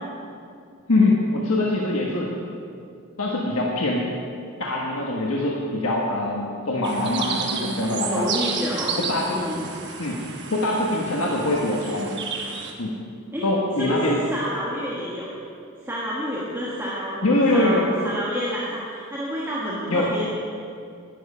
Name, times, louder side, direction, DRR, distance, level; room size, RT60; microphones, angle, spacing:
voice 1, 0.9-2.3 3.2-4.0 4.6-8.3 9.0-9.4 10.0-10.2 10.5-12.1 12.8-13.0 13.4-14.2 17.2-17.9 19.9-20.1, left 2 dB, 85° left, -3 dB, 1.3 m, -23 dB
sound 1, 6.8-12.7, right 6 dB, 55° right, 1.1 m, -32 dB
voice 2, 8.0-9.0 9.3-9.6 13.3-13.4 13.8-15.3 15.8-17.2 17.5-20.3, equal, 10° right, -7 dB, 1.3 m, -29 dB
10.5 x 10.5 x 5.5 m, 2.4 s
head